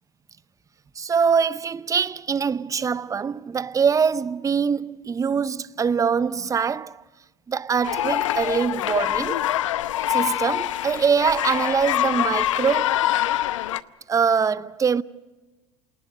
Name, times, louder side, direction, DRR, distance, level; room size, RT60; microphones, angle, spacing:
voice 1, 1.0-7.0 7.5-9.5 10.1-13.0 14.1-15.0, right 6 dB, 20° right, 0.7 m, -23 dB
sound 1, 7.8-13.8, left 13 dB, 85° left, 0.7 m, -25 dB
27.5 x 19.0 x 6.6 m
hypercardioid pair, 90°, 16 cm